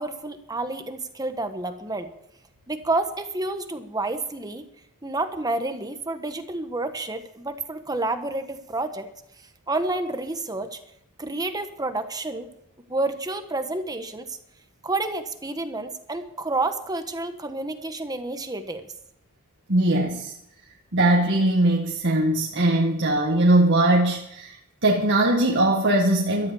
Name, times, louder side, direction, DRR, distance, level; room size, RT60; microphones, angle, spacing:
voice 1, 0.0-2.1 2.7-4.6 5.0-9.1 9.7-10.8 11.2-12.5 12.9-14.4 14.8-18.8, right 2 dB, 15° right, 8 dB, 1.3 m, -29 dB
voice 2, 19.7-20.3 20.9-24.6 24.8-26.5, right 1 dB, 55° right, -1 dB, 1.9 m, -20 dB
13.0 x 12.5 x 7.0 m, 0.77 s
head